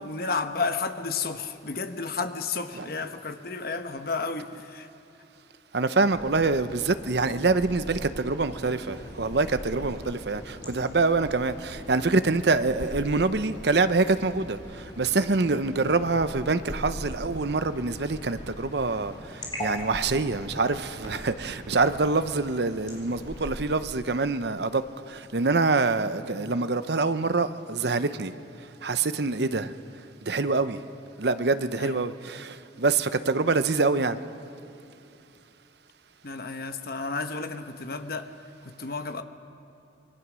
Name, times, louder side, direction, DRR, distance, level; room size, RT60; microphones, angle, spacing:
voice 1, 0.0-4.9 26.3-26.6 31.8-32.1 36.2-38.3 38.6-39.2, left 4 dB, 55° left, 1.1 m, -32 dB
voice 2, 5.7-28.4 28.8-29.8 30.2-30.8 31.2-34.2, right 3 dB, 60° right, 0.8 m, -25 dB
sound 1, 6.1-23.6, equal, 25° left, 4.2 m, -41 dB
26.5 x 21.5 x 6.2 m
head